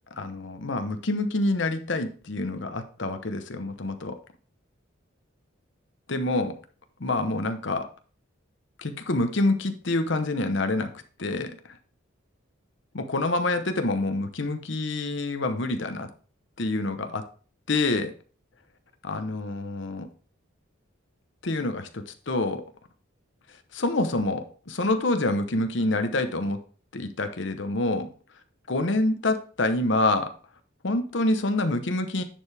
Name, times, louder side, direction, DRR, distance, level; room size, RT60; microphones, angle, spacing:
voice 1, 0.1-4.2 6.1-6.6 7.0-7.9 8.8-10.9 11.2-11.6 12.9-16.1 16.6-17.3 17.7-18.1 19.0-20.1 21.4-22.6 23.7-26.6 26.9-28.1 28.7-30.3 30.8-32.2, left 2 dB, 60° left, 8 dB, 0.9 m, -27 dB
10.0 x 4.7 x 3.4 m, 0.39 s
head